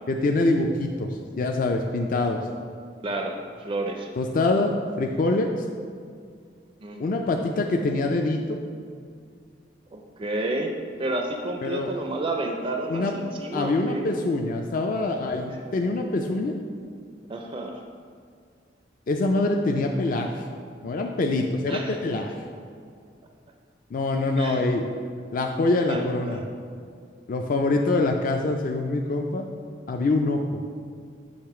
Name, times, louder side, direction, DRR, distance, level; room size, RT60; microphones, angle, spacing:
voice 1, 0.1-2.4 4.2-5.6 7.0-8.6 11.6-11.9 12.9-13.1 13.5-16.5 19.1-20.4 20.8-22.3 23.9-24.8 25.3-26.4 27.3-29.5 29.9-30.4, left 2 dB, 45° left, 2 dB, 0.4 m, -25 dB
voice 2, 3.0-3.3 3.6-4.1 6.8-7.0 9.9-10.7 11.0-14.0 15.5-15.6 17.3-17.8 21.7-22.0 24.4-24.6 25.9-26.4, right 2 dB, 30° right, 3 dB, 0.4 m, -30 dB
6.6 x 3.1 x 5.8 m, 2.2 s
head